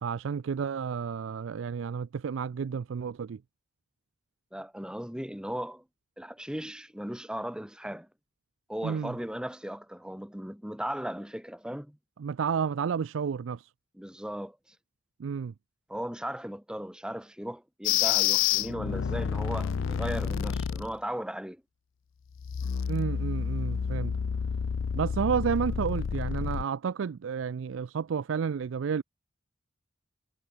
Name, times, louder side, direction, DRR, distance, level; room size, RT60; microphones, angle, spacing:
voice 1, 0.0-3.4 8.8-9.1 12.2-13.7 15.2-15.5 22.9-24.2 24.9-29.0, right 6 dB, 70° right, 0.4 m, -31 dB
voice 2, 4.5-5.8 6.2-8.1 8.7-12.0 13.9-14.8 15.9-21.6, equal, 5° right, 2.0 m, -37 dB
sound 1, 17.8-20.9 22.3-26.6, left 8 dB, 75° left, 0.4 m, -29 dB
head